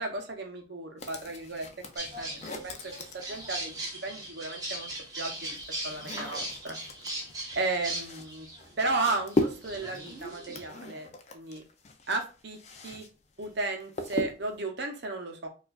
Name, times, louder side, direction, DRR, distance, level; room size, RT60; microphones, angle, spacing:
voice 1, 0.0-1.7 2.0-3.7 4.0-4.9 5.2-5.3 5.8-6.8 7.6-8.5 8.8-11.6 12.1-12.6 12.8-13.1 13.4-15.5, right 3 dB, 55° right, 4 dB, 0.7 m, -34 dB
sound 1, 1.0-3.8 4.8-13.1 13.4-14.6, left 2 dB, 35° left, 0.4 m, -37 dB
sound 2, 2.0-10.7, right 1 dB, 20° right, 0.8 m, -39 dB
4.4 x 2.4 x 2.3 m, 0.33 s
head